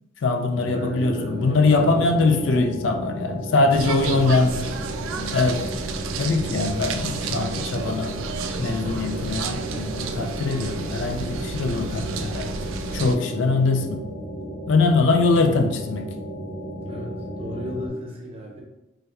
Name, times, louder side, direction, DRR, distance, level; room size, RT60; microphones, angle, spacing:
voice 1, 0.2-4.6 5.2-5.6 6.2-8.2 8.6-12.5 12.9-14.1 14.7-16.1, left 3 dB, 70° left, 5 dB, 0.4 m, -22 dB
sound 1, 0.5-17.9, equal, 30° left, 0.6 m, -34 dB
voice 2, 0.7-2.1 3.5-4.6 16.8-18.6, equal, 30° right, -2 dB, 0.7 m, -35 dB
sound 2, 3.7-13.2, right 5 dB, 85° right, 0.3 m, -31 dB
3.2 x 2.9 x 2.3 m, 0.96 s
head